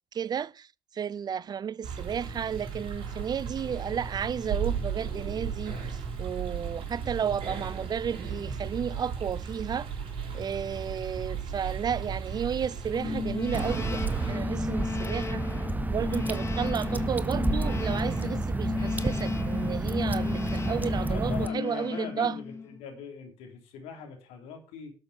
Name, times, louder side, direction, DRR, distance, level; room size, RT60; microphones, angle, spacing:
voice 1, 0.1-0.7 0.9-9.9 10.3-15.4 15.9-22.4, right 7 dB, 40° right, 0.5 m, -33 dB
sound 1, 1.8-14.3, right 6 dB, 55° right, 5.2 m, -35 dB
sound 2, 12.9-22.8, left 5 dB, 25° left, 0.5 m, -34 dB
Water / Drip, 13.5-21.5, right 2 dB, 15° right, 1.0 m, -30 dB
voice 2, 21.1-24.9, left 7 dB, 70° left, 3.4 m, -41 dB
12.0 x 6.7 x 6.3 m
hypercardioid pair, 55°, 11 cm